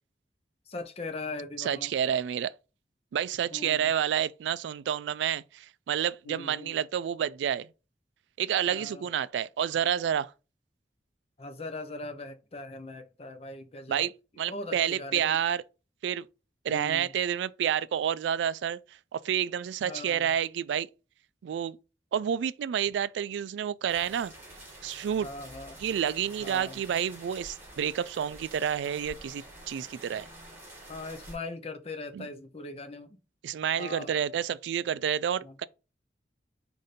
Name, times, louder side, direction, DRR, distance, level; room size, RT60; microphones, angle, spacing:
voice 1, 0.7-1.9 3.5-3.9 6.3-6.7 8.7-9.1 11.4-14.1 14.5-15.4 16.7-17.1 19.8-20.3 25.2-25.8 26.4-26.8 30.9-33.2 33.8-34.2 35.4-35.5, left 2 dB, 35° left, 0.7 m, -40 dB
voice 2, 1.6-2.5 3.1-7.7 8.4-10.3 13.9-14.1 14.4-15.6 16.0-16.3 16.6-18.8 19.1-20.9 21.4-21.8 22.1-24.3 24.8-25.3 25.8-30.3 32.1-32.3 33.4-35.7, right 9 dB, 80° right, 0.3 m, -29 dB
sound 1, 23.9-31.4, right 1 dB, 15° right, 1.7 m, -48 dB
5.0 x 2.6 x 4.1 m
head